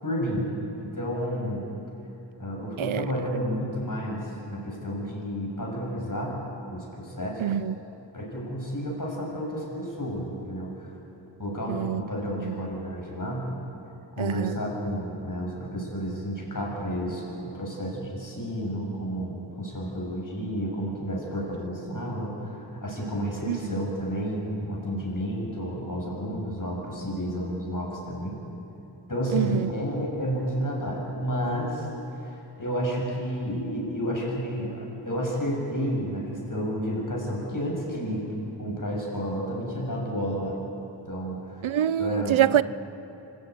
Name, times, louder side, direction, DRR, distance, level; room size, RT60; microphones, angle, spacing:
voice 1, 0.0-0.4 0.8-1.6 2.4-7.4 8.1-10.9 11.4-13.5 14.2-28.4 29.1-31.9 32.2-38.3 38.6-40.6 41.1-41.6 42.0-42.4, equal, 40° left, 7.1 m, -31 dB
voice 2, 7.4-7.8 11.7-12.0 12.4-12.5 14.2-14.5 23.5-23.6 29.3-29.7 41.6-42.6, right 11 dB, 80° right, 0.6 m, -25 dB
25.5 x 13.5 x 9.4 m
wide cardioid pair, 55°, 47 cm